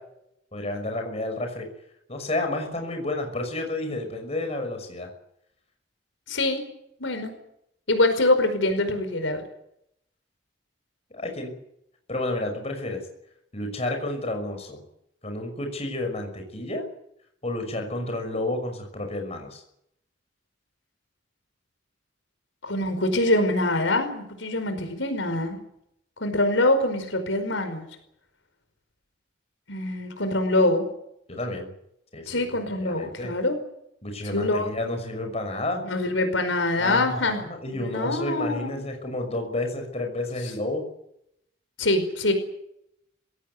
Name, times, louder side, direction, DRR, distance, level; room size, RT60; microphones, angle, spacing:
voice 1, 0.5-1.7 2.1-5.1 11.1-11.6 12.1-13.0 13.5-14.8 15.2-16.8 17.4-19.6 31.3-31.7 32.1-32.5 32.8-33.3 34.0-35.8 36.8-40.8, left 2 dB, 35° left, 5 dB, 6.0 m, -30 dB
voice 2, 6.3-6.6 7.0-7.3 7.9-9.4 22.6-25.6 26.2-27.9 29.7-30.8 32.3-33.6 34.3-34.7 35.8-37.4 37.7-38.8 41.8-42.3, left 2 dB, 90° left, 8 dB, 5.1 m, -24 dB
21.5 x 17.5 x 9.6 m, 0.76 s
head